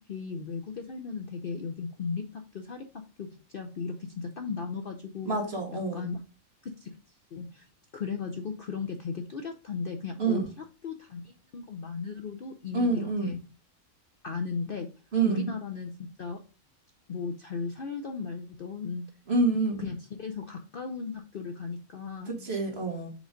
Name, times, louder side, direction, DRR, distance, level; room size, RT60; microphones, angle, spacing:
voice 1, 0.1-2.8 3.2-3.3 3.5-5.3 5.9-6.2 6.6-7.0 7.3-7.7 7.9-13.4 14.2-14.9 15.2-16.4 17.1-19.0 19.8-22.5, left 5 dB, 50° left, 0.7 m, -36 dB
voice 2, 5.2-6.1 10.2-10.5 12.7-13.3 15.1-15.5 19.3-19.9 22.2-23.1, right 3 dB, 45° right, 1.7 m, -27 dB
5.1 x 3.9 x 5.0 m
omnidirectional pair, 1.5 m